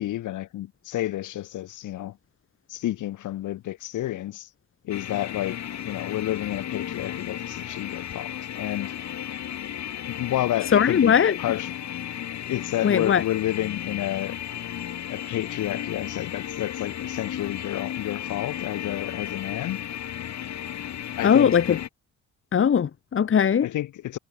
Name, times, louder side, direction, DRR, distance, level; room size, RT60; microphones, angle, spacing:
voice 1, 0.0-2.2 2.7-4.5 4.8-9.0 10.1-11.7 12.3-14.4 15.1-19.8 21.2-21.8 23.6-24.2, left 14 dB, 80° left, 3.7 m, -30 dB
sound 1, 4.9-21.9, left 10 dB, 65° left, 4.9 m, -34 dB
voice 2, 10.7-11.3 12.8-13.2 21.2-21.8 22.5-23.7, left 8 dB, 45° left, 1.6 m, -19 dB
cardioid pair, 90°, 30 cm